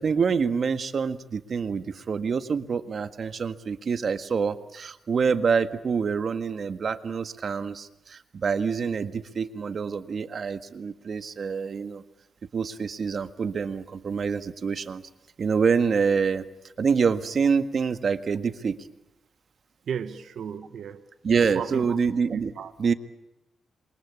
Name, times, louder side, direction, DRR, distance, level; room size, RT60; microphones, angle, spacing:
voice 1, 0.0-12.0 12.5-15.0 15.4-16.4 16.8-18.9 21.2-22.5 22.8-22.9, right 5 dB, 55° right, 10 dB, 1.6 m, -26 dB
voice 2, 19.9-21.0 21.5-22.0 22.3-22.7, right 7 dB, 75° right, 8 dB, 1.5 m, -33 dB
27.5 x 23.5 x 8.6 m, 0.88 s
cardioid pair, 95°, 0 cm